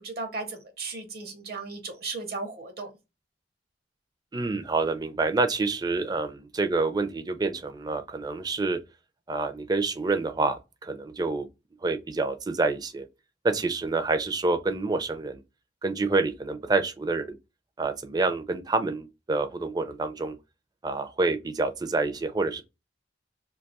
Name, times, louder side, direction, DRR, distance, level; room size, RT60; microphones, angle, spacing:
voice 1, 0.0-2.9, right 3 dB, 60° right, 0.7 m, -36 dB
voice 2, 4.3-8.8 9.3-11.5 11.8-13.1 13.4-15.4 15.8-17.4 17.8-20.3 20.8-22.6, right 3 dB, 20° right, 0.4 m, -27 dB
3.2 x 2.3 x 4.0 m
head